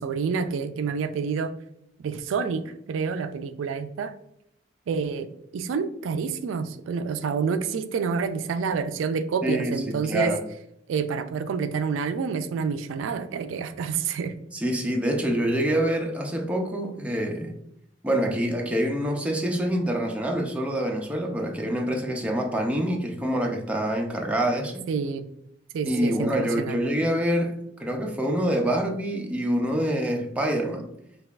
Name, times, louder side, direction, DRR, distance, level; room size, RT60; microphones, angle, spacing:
voice 1, 0.0-1.5 2.0-4.1 4.9-10.4 10.9-14.4 24.9-25.2 25.7-26.8, right 5 dB, 80° right, 10 dB, 0.3 m, -28 dB
voice 2, 9.4-10.4 14.5-17.5 18.0-24.9 25.9-30.9, right 1 dB, 5° right, 1 dB, 0.4 m, -26 dB
5.2 x 2.4 x 2.3 m, 0.76 s
head